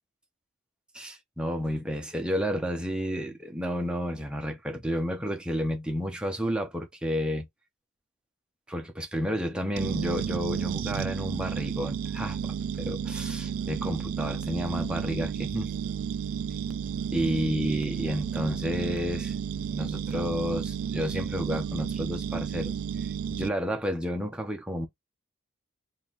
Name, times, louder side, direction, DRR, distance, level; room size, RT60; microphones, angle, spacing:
voice 1, 0.9-7.5 8.7-15.7 17.1-19.3 19.6-22.7 23.0-24.9, equal, 5° right, 0.8 m, -31 dB
sound 1, 9.8-23.5, right 7 dB, 85° right, 0.4 m, -32 dB
3.9 x 2.6 x 3.0 m
head